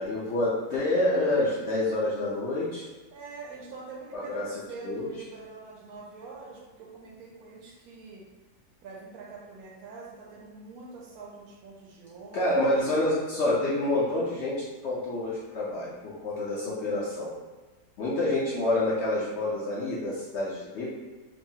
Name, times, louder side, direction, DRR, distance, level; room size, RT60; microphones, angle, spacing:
voice 1, 0.0-2.8 4.1-4.4 4.8-5.1 12.3-14.5 14.8-17.3 18.0-20.8, left 1 dB, 65° left, -7 dB, 0.7 m, -27 dB
voice 2, 3.1-8.2 8.8-12.8, right 4 dB, 75° right, -2 dB, 1.1 m, -44 dB
2.9 x 2.3 x 2.7 m, 1.2 s
omnidirectional pair, 1.6 m